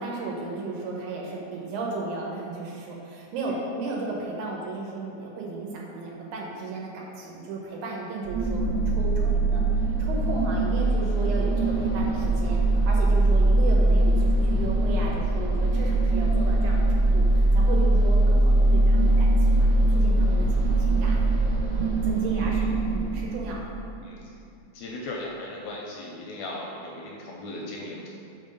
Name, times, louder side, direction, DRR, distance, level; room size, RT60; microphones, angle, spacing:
voice 1, 0.0-23.7, right 3 dB, 85° right, -2 dB, 2.3 m, -35 dB
sound 1, 8.2-24.2, right 2 dB, 60° right, 1.5 m, -22 dB
voice 2, 22.3-22.8 24.0-24.3 24.7-28.1, left 2 dB, 80° left, -2 dB, 1.6 m, -37 dB
4.8 x 3.8 x 5.2 m, 2.5 s
omnidirectional pair, 3.4 m